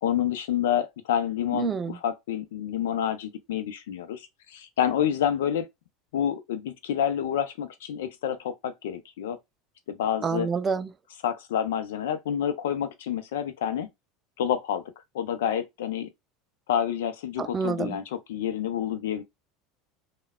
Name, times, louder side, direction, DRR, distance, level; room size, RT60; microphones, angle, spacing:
voice 1, 0.0-5.7 6.1-9.4 9.9-10.5 11.2-13.9 14.4-14.8 15.1-16.1 16.7-19.2, left 9 dB, 75° left, 0.5 m, -28 dB
voice 2, 1.6-2.0 10.2-10.9 17.4-18.0, right 5 dB, 30° right, 0.3 m, -28 dB
3.3 x 2.1 x 2.2 m
hypercardioid pair, 80°, 0 cm